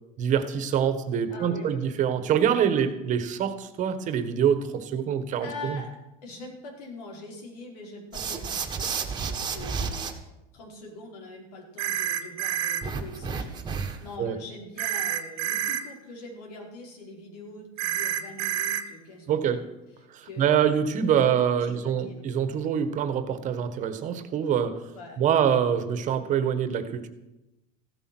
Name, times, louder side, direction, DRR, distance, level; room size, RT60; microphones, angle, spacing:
voice 1, 0.2-5.8 14.2-14.3 19.3-19.6 20.1-24.9 25.2-27.1, right 8 dB, 40° right, 11 dB, 1.6 m, -25 dB
voice 2, 1.3-1.9 5.4-5.9 6.2-10.1 10.5-19.6 20.2-20.7 21.2-21.3 21.6-22.2 24.9-25.5, left 2 dB, 90° left, 0 dB, 5.0 m, -43 dB
sound 1, 8.1-10.1 12.8-14.1, right 5 dB, 20° right, 1.7 m, -31 dB
sound 2, 11.8-12.8 14.8-15.8 17.8-18.8, right 11 dB, 70° right, 1.6 m, -28 dB
15.0 x 12.0 x 6.2 m, 0.95 s
supercardioid pair, 135°, 20 cm